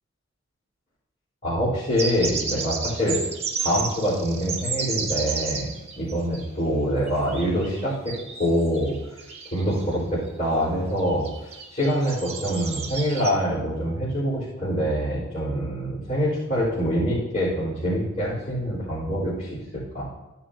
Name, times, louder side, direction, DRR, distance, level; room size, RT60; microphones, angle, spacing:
voice 1, 1.4-3.2 3.6-8.9 9.5-20.0, equal, 35° left, -11 dB, 4.2 m, -25 dB
sound 1, 1.9-6.5 7.1-10.0 10.3-10.4 11.0-13.3, right 5 dB, 30° right, 1.6 m, -32 dB
15.5 x 9.8 x 2.9 m, 1.0 s
head